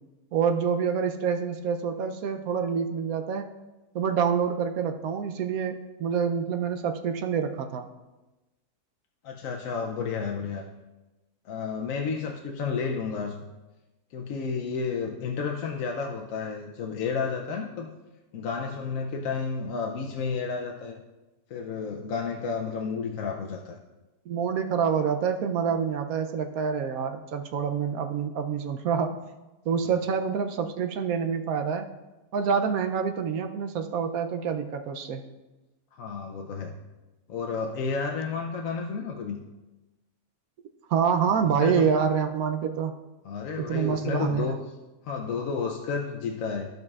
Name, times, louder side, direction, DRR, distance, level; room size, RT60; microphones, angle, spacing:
voice 1, 0.3-3.5 3.9-7.9 24.3-29.2 29.7-31.9 32.3-35.2 40.9-42.9 43.6-44.5, right 7 dB, 70° right, 6 dB, 1.0 m, -27 dB
voice 2, 9.2-10.6 11.4-13.4 14.1-17.9 18.3-21.0 21.5-23.8 29.8-29.9 36.0-36.8 37.3-39.4 41.4-41.9 43.2-44.6 45.0-46.7, left 5 dB, 65° left, 2 dB, 1.0 m, -31 dB
15.0 x 5.2 x 2.4 m, 1.1 s
omnidirectional pair, 1.6 m